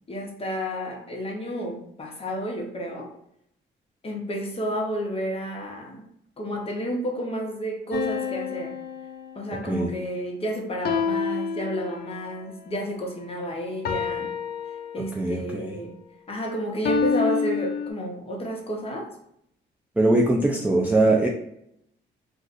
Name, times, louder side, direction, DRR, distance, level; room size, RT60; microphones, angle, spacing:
voice 1, 0.1-3.1 4.0-6.1 6.4-8.7 9.3-14.3 14.9-16.0 16.3-19.1, equal, 30° left, 1 dB, 0.9 m, -31 dB
sound 1, 7.9-9.7 10.8-12.3 13.8-15.4 16.8-17.9, left 7 dB, 50° left, 0.5 m, -28 dB
voice 2, 15.1-15.7 20.0-21.3, right 2 dB, 10° right, -1 dB, 0.4 m, -21 dB
2.5 x 2.4 x 4.0 m, 0.73 s
cardioid pair, 90°, 20 cm